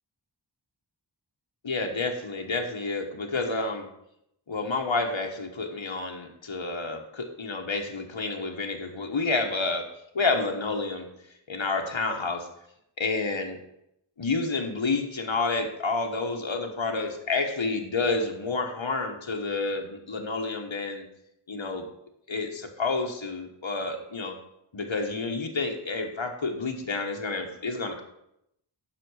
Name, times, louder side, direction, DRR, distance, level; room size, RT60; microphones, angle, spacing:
voice 1, 1.6-3.9 4.5-9.9 10.1-11.1 11.5-12.5 13.0-13.6 14.2-21.0 21.5-21.8 22.3-24.4 24.7-28.0, left 3 dB, 75° left, 3 dB, 1.3 m, -29 dB
7.6 x 6.3 x 6.3 m, 0.79 s
wide cardioid pair, 40°, 46 cm